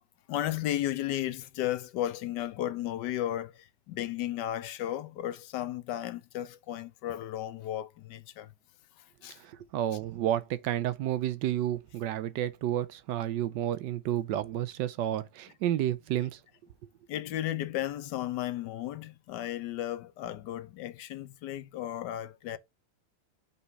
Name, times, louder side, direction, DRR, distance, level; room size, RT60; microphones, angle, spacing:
voice 1, 0.3-8.5 9.0-9.4 17.1-22.6, left 12 dB, 75° left, 1.2 m, -34 dB
voice 2, 9.4-16.4, right 12 dB, 75° right, 1.2 m, -31 dB
5.6 x 3.9 x 4.6 m
omnidirectional pair, 2.0 m